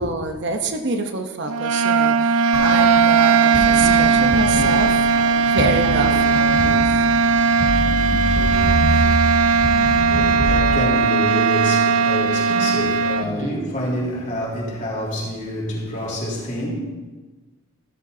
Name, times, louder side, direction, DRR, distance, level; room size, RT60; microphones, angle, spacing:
voice 1, 0.0-7.0 13.2-13.7, right 3 dB, 50° right, 0.9 m, -27 dB
sound 1, 1.5-13.3, right 5 dB, 75° right, 0.5 m, -18 dB
sound 2, 2.5-10.7, equal, 15° right, 3.5 m, -25 dB
voice 2, 8.9-9.6 10.1-16.7, equal, 35° left, 3.9 m, -27 dB
16.5 x 13.5 x 2.8 m
head